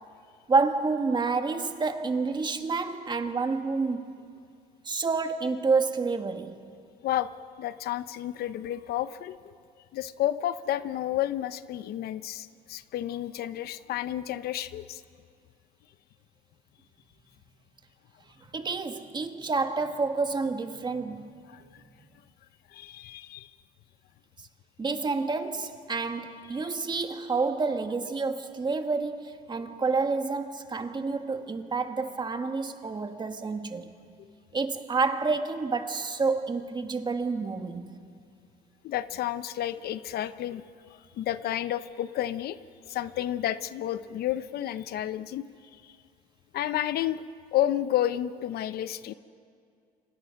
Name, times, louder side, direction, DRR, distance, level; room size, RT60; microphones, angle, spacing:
voice 1, 0.5-4.1 4.8-6.6 18.5-21.3 24.8-33.9 34.5-38.0, right 4 dB, 25° right, 1.6 m, -29 dB
voice 2, 7.6-9.4 9.9-15.0 21.5-21.8 22.7-23.5 38.8-40.6 40.9-42.6 42.9-45.4 45.8-45.9 46.5-47.2 47.5-49.1, left 12 dB, 65° left, 0.8 m, -31 dB
29.5 x 25.5 x 5.9 m
cardioid pair, 110°, 17 cm